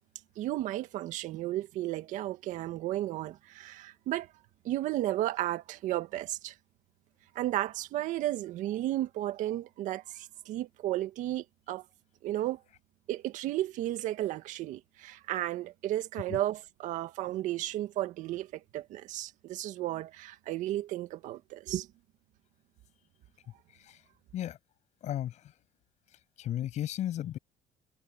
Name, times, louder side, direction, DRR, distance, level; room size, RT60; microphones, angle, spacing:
voice 1, 0.4-4.3 4.6-6.6 7.4-11.9 12.2-12.6 13.1-21.9, right 14 dB, 70° right, 1.9 m, -33 dB
voice 2, 25.0-25.4 26.4-27.4, left 12 dB, 60° left, 8.0 m, -34 dB
cardioid pair, 95°, 13 cm